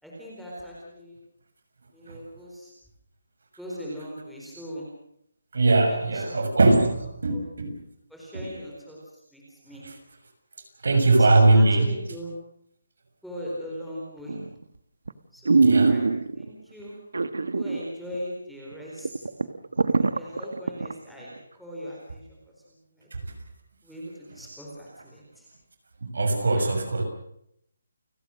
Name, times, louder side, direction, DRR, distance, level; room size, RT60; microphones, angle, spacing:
voice 1, 0.0-1.2 1.9-2.7 3.6-4.9 5.9-6.9 7.3-7.5 8.1-9.9 10.9-12.3 13.2-14.4 15.3-16.1 16.3-17.0 17.5-19.3 19.8-22.4 22.7-23.3 23.8-25.5 26.4-26.7, equal, ahead, -7 dB, 4.3 m, -40 dB
voice 2, 5.5-7.7 10.8-11.9 15.6-15.9 26.0-27.0, right 2 dB, 60° right, 5 dB, 6.6 m, -20 dB
sound 1, 14.3-14.6 15.1-15.2 15.5-16.5 17.1-17.8 18.1-18.2 18.7-18.8 19.0-20.9 21.4-21.5, right 4 dB, 80° right, 1.7 m, -22 dB
29.5 x 17.5 x 6.5 m, 0.73 s
hypercardioid pair, 180°, 0 cm